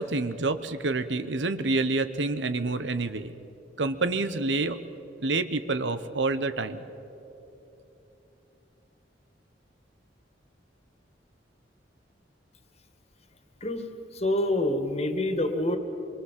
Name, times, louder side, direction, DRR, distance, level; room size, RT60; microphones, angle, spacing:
voice 1, 0.0-3.3 3.8-4.8 5.2-6.8, right 3 dB, 80° right, 11 dB, 1.0 m, -28 dB
voice 2, 14.1-15.8, left 1 dB, 35° left, 7 dB, 2.0 m, -26 dB
25.5 x 23.5 x 7.6 m, 2.9 s
head